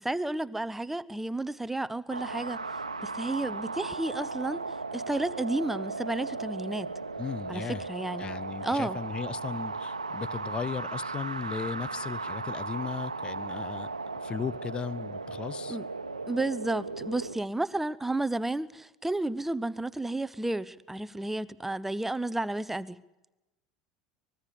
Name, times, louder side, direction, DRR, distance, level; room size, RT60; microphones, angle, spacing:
voice 1, 0.0-2.6 3.0-4.6 4.9-6.9 7.5-8.3 8.6-9.0 15.7-15.9 16.3-23.0, right 2 dB, 5° right, 16 dB, 0.8 m, -32 dB
sound 1, 2.1-17.4, right 3 dB, 85° right, 1.0 m, -36 dB
voice 2, 7.2-7.8 8.2-13.9 14.2-15.8, left 6 dB, 30° left, 22 dB, 0.7 m, -36 dB
24.0 x 20.5 x 8.4 m, 1.0 s
figure-of-eight pair, 75°, 3 cm